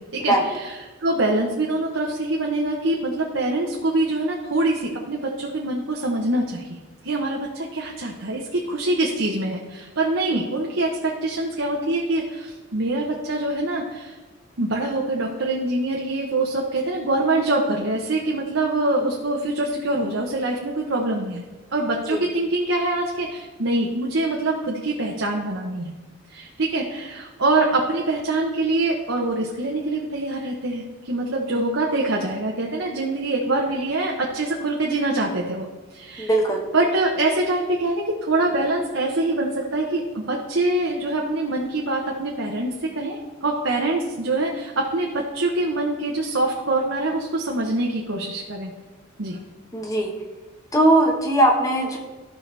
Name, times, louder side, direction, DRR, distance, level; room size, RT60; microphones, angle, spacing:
voice 1, 0.0-6.8 7.0-14.2 14.6-21.4 21.7-25.9 26.3-36.3 36.7-48.7 49.2-49.4, right 2 dB, 75° right, -1 dB, 1.1 m, -24 dB
voice 2, 36.2-36.6 49.7-50.1 50.7-52.0, right 1 dB, 15° left, 0 dB, 1.3 m, -19 dB
14.0 x 5.8 x 3.4 m, 1.2 s
head